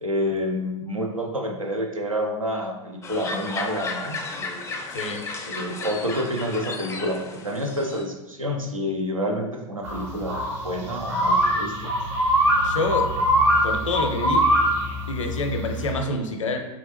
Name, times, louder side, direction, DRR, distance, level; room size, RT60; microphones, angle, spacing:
voice 1, 0.0-4.7 5.5-11.9, equal, 90° right, 2 dB, 0.5 m, -28 dB
sound 1, 3.0-8.0, left 3 dB, 15° left, 0.3 m, -34 dB
voice 2, 4.9-5.3 12.6-13.1 13.6-14.5 15.1-16.6, left 2 dB, 70° left, 5 dB, 0.5 m, -27 dB
sound 2, 9.8-15.9, equal, 60° right, 1.4 m, -23 dB
3.3 x 2.8 x 3.0 m, 1.1 s
figure-of-eight pair, 85°, 17 cm